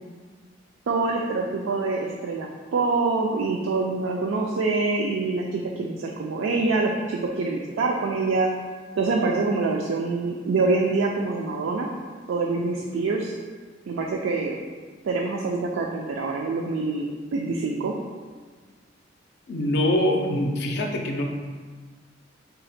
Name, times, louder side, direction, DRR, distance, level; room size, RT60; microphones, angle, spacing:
voice 1, 0.9-8.5 9.0-11.9 12.3-13.4 13.9-14.6 15.0-17.1 17.3-17.9, right 3 dB, 85° right, 0 dB, 0.3 m, -25 dB
voice 2, 19.5-21.2, left 1 dB, 60° left, 2 dB, 0.4 m, -24 dB
3.9 x 2.1 x 4.1 m, 1.5 s
head